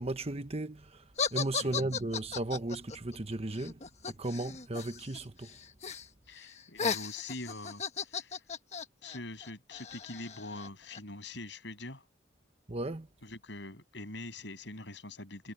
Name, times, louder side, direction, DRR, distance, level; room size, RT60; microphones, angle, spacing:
voice 1, 0.0-5.6 12.7-13.1, right 2 dB, 35° right, 1.1 m, -36 dB
sound 1, 1.2-5.2 5.4-6.1 6.4-11.0, left 6 dB, 40° left, 1.3 m, -36 dB
voice 2, 6.3-8.4 9.0-12.0 13.2-15.5, left 2 dB, 70° left, 7.6 m, -44 dB
head